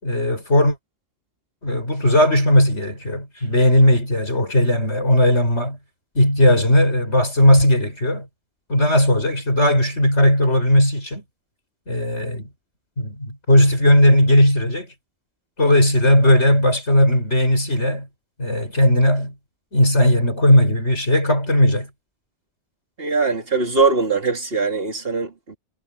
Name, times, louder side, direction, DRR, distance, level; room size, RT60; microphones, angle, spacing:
voice 1, 0.0-0.8 1.6-5.8 6.2-8.3 8.7-11.2 11.9-12.5 13.0-14.9 15.6-18.1 18.4-19.3 19.7-21.9, left 1 dB, 80° left, 7.4 m, -17 dB
voice 2, 23.0-25.6, right 4 dB, 55° right, 2.7 m, -21 dB
omnidirectional pair, 1.2 m